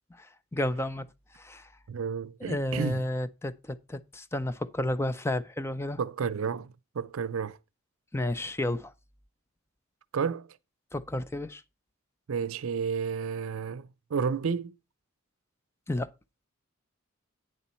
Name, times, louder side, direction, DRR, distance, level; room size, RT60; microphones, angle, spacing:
voice 1, 0.5-1.0 1.4-1.6 2.4-6.0 8.1-8.9 10.9-11.6 15.9-16.1, left 1 dB, 10° left, 0.5 m, -31 dB
voice 2, 1.9-3.0 6.0-7.6 10.1-10.5 12.3-14.7, right 6 dB, 75° right, 0.5 m, -31 dB
9.2 x 7.1 x 4.3 m
head